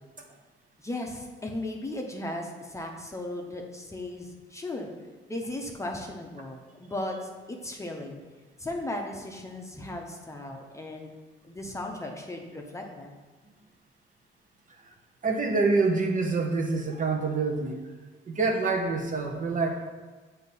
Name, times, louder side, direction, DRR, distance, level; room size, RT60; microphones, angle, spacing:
voice 1, 0.8-4.9 5.3-8.2 8.6-11.1 11.4-13.1, left 1 dB, 15° left, 1 dB, 0.8 m, -36 dB
voice 2, 15.2-17.8 18.3-19.9, right 3 dB, 40° right, 2 dB, 0.9 m, -26 dB
7.8 x 2.8 x 5.4 m, 1.3 s
cardioid pair, 90°, 20 cm